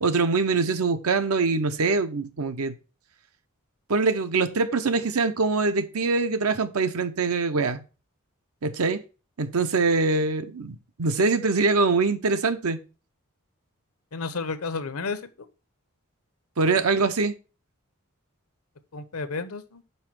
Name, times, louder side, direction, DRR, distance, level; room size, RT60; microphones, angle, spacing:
voice 1, 0.0-2.7 3.9-7.8 8.6-9.0 9.4-12.8 16.6-17.3, right 4 dB, 85° right, 0.8 m, -23 dB
voice 2, 14.1-15.3 18.9-19.8, left 4 dB, 85° left, 0.9 m, -32 dB
5.5 x 4.6 x 6.0 m
head